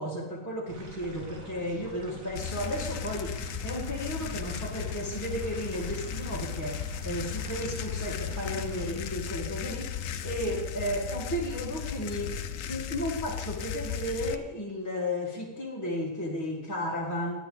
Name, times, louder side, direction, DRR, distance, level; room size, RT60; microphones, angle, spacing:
voice 1, 0.0-12.4 12.6-17.4, equal, 15° left, -4 dB, 2.1 m, -34 dB
sound 1, 0.7-8.8, right 1 dB, 90° right, 2.5 m, -45 dB
sound 2, 2.4-14.4, left 8 dB, 75° left, 1.1 m, -36 dB
18.0 x 10.0 x 4.0 m, 1.0 s
omnidirectional pair, 1.4 m